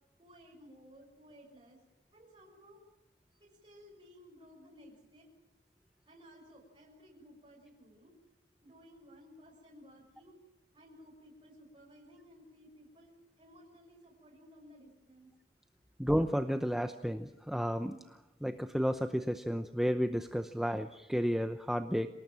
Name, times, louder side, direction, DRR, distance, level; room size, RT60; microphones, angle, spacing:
voice 1, 0.2-1.8 2.1-2.8 3.4-5.3 6.1-8.1 8.6-10.4 10.7-15.3, equal, 25° right, -2 dB, 6.5 m, -57 dB
voice 2, 16.0-18.0 18.4-22.1, equal, ahead, 8 dB, 0.7 m, -32 dB
27.5 x 19.0 x 7.5 m, 0.98 s
head